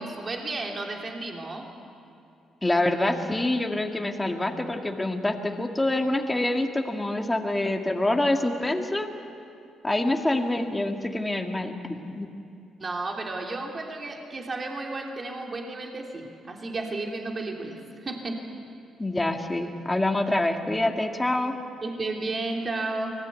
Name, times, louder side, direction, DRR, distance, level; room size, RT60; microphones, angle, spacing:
voice 1, 0.0-1.7 12.8-18.4 21.8-23.1, right 2 dB, 35° right, 1 dB, 3.0 m, -33 dB
voice 2, 2.6-9.1 9.8-12.3 19.0-21.6, left 1 dB, 15° left, 3 dB, 2.0 m, -26 dB
24.5 x 19.0 x 8.3 m, 2.6 s
cardioid pair, 90°, 0 cm